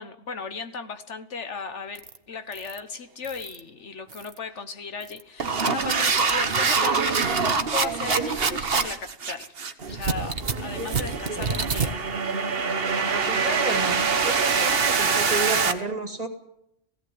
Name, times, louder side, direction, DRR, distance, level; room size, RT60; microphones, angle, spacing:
voice 1, 0.0-9.5 9.9-12.4, left 5 dB, 70° left, 10 dB, 1.5 m, -36 dB
sound 1, 2.0-2.2 2.5-2.8 3.2-3.6 4.1-4.4 5.0-15.7, right 5 dB, 50° right, 1.4 m, -24 dB
voice 2, 12.8-16.3, right 2 dB, 30° right, 6 dB, 2.3 m, -32 dB
17.5 x 16.5 x 9.5 m, 0.79 s
omnidirectional pair, 1.3 m